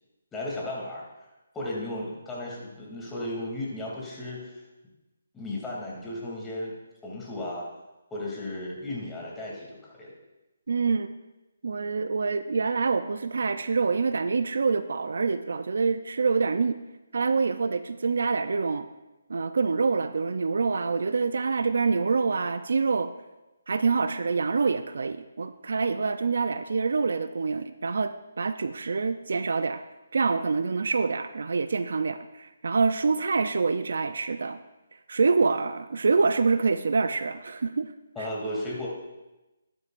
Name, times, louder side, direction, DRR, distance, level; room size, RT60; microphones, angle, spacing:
voice 1, 0.3-1.0 1.5-4.6 5.3-6.7 7.0-7.7 8.1-10.1 38.1-38.9, left 1 dB, 10° left, -4 dB, 2.8 m, -35 dB
voice 2, 10.7-11.1 11.6-16.8 17.1-18.9 19.3-23.1 23.7-29.8 30.1-34.6 35.1-37.9 38.2-38.3, right 4 dB, 70° right, 11 dB, 0.5 m, -26 dB
13.0 x 12.5 x 2.6 m, 1.0 s
figure-of-eight pair, 150°, 0 cm